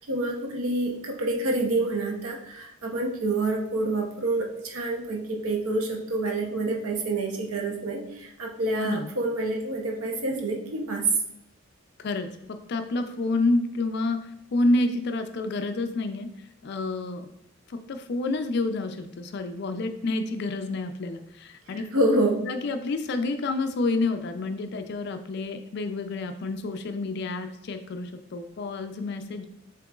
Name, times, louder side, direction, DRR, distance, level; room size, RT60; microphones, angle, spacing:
voice 1, 0.0-11.1 21.7-22.5, right 2 dB, 85° right, 1 dB, 0.7 m, -27 dB
voice 2, 8.7-9.1 12.0-14.2 14.5-16.3 16.6-17.3 17.7-21.9 22.5-29.4, left 2 dB, 50° left, 7 dB, 0.4 m, -29 dB
7.4 x 3.0 x 2.3 m, 0.83 s
head